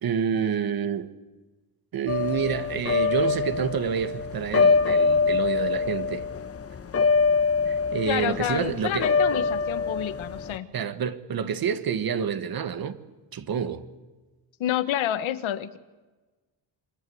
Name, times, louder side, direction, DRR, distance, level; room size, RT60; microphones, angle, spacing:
voice 1, 0.0-1.1 1.9-6.3 7.7-9.1 10.7-13.0 13.3-13.9, right 7 dB, 50° right, 1.8 m, -28 dB
sound 1, 2.1-10.6, left 4 dB, 30° left, 1.1 m, -24 dB
voice 2, 8.0-10.7 14.6-15.8, left 11 dB, 90° left, 1.6 m, -28 dB
27.5 x 26.0 x 8.0 m
cardioid pair, 160°, 46 cm